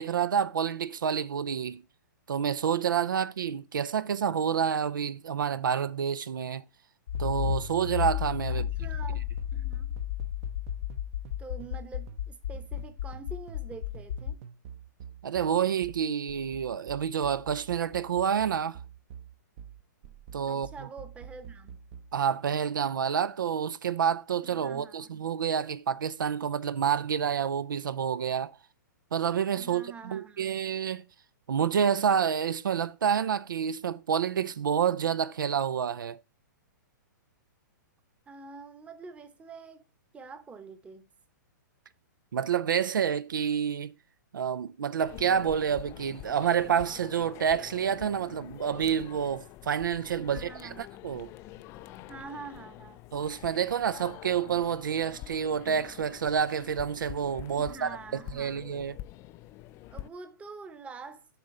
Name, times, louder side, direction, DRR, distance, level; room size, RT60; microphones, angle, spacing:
voice 1, 0.0-1.8 2.3-6.6 7.2-8.7 15.2-18.8 20.3-20.7 22.1-28.6 29.1-31.0 31.5-36.2 42.3-43.9 44.3-51.3 53.1-58.0 58.3-59.0, right 8 dB, 85° right, 0.5 m, -28 dB
Accelerating revving vroom, 7.1-14.3, left 10 dB, 70° left, 0.7 m, -33 dB
sound 1, 7.1-8.1 8.3-11.8 12.1-22.2, right 8 dB, 45° right, 0.8 m, -47 dB
voice 2, 8.5-9.9 11.4-14.4 20.5-21.7 24.4-25.1 29.5-30.5 38.3-39.8 40.1-41.1 50.2-50.9 52.1-53.0 57.5-58.6 59.9-61.3, right 4 dB, 10° right, 0.9 m, -46 dB
sound 2, 45.0-60.1, left 15 dB, 25° left, 0.4 m, -46 dB
7.4 x 3.8 x 6.5 m
hypercardioid pair, 140°, 10 cm